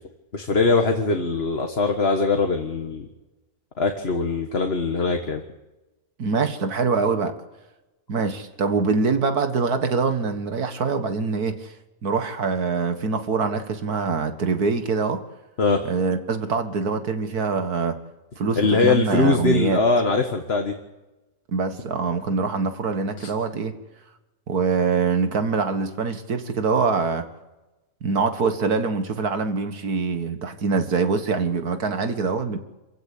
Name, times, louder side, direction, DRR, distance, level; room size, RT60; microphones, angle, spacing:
voice 1, 0.3-3.1 3.8-5.4 15.6-15.8 18.6-20.7 23.2-23.3, left 4 dB, 45° left, 4 dB, 1.8 m, -21 dB
voice 2, 6.2-7.3 8.1-11.7 12.0-15.2 15.8-18.0 18.4-19.8 21.5-23.7 24.5-27.3 28.0-32.6, right 4 dB, 85° right, 8 dB, 2.2 m, -24 dB
27.0 x 16.0 x 8.6 m, 1.1 s
omnidirectional pair, 1.6 m